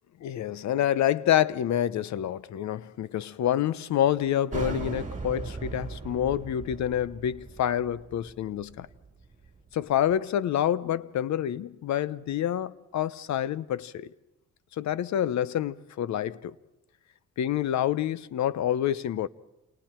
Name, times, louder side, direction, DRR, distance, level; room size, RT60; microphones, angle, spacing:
voice 1, 0.2-8.9 9.7-14.1 14.8-16.5 17.4-19.3, left 11 dB, 65° left, 0.8 m, -27 dB
sound 1, 4.5-9.8, right 4 dB, 25° right, 3.5 m, -38 dB
28.5 x 28.0 x 4.5 m
cardioid pair, 90°, 30 cm